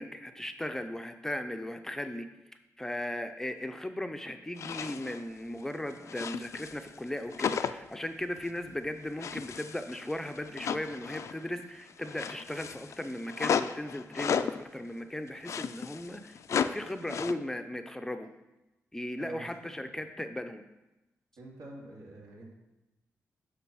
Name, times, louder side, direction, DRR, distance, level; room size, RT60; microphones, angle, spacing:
voice 1, 0.0-2.3 2.8-18.3 18.9-20.6, left 1 dB, 10° left, 7 dB, 0.5 m, -37 dB
sound 1, 4.6-5.2 5.6-7.0 7.3-8.0 8.4-8.6 9.2-11.5 11.8-14.6 15.3-17.3, left 7 dB, 65° left, 0.4 m, -34 dB
voice 2, 19.2-19.9 21.4-22.5, right 2 dB, 85° right, -4 dB, 2.9 m, -46 dB
11.0 x 3.9 x 6.2 m, 0.98 s
wide cardioid pair, 135°, 6 cm